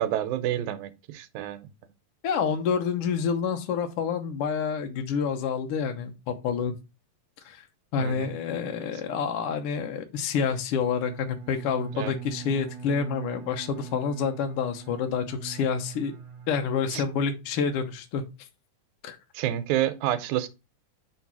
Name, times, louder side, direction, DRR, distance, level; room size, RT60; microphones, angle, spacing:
voice 1, 0.0-1.7 8.0-8.3 11.9-12.1 16.9-17.0 17.6-17.7 19.3-20.5, right 12 dB, 85° right, 2.0 m, -29 dB
voice 2, 2.2-6.7 7.4-7.6 7.9-16.1 16.5-18.2 19.0-19.2, left 6 dB, 70° left, 1.5 m, -28 dB
Bowed string instrument, 11.0-17.6, right 7 dB, 50° right, 1.5 m, -42 dB
5.1 x 4.0 x 5.9 m
omnidirectional pair, 3.5 m